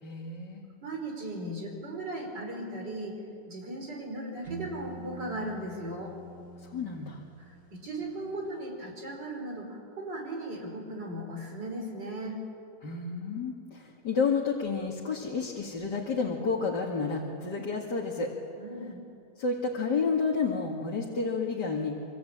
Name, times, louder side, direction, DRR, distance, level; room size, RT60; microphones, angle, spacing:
voice 1, 0.0-0.6 6.6-7.2 12.8-18.3 19.4-22.0, left 4 dB, 70° left, -2 dB, 2.8 m, -30 dB
voice 2, 0.8-3.2 3.5-6.1 7.4-12.4 18.6-19.0, right 1 dB, 75° right, 1 dB, 5.4 m, -37 dB
sound 1, 4.5-8.3, right 2 dB, 40° right, 3.7 m, -45 dB
26.0 x 25.5 x 8.8 m, 2.5 s
omnidirectional pair, 1.9 m